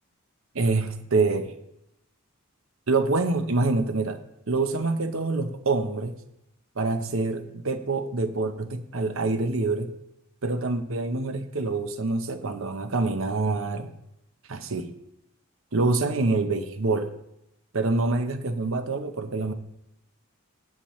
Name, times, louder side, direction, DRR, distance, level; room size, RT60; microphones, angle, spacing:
voice 1, 0.5-1.5 2.9-4.2 4.5-6.2 6.8-9.9 10.4-13.9 14.5-14.9 15.7-17.1 17.7-19.5, right 3 dB, 70° right, 8 dB, 0.9 m, -26 dB
17.0 x 7.4 x 3.2 m, 0.85 s
head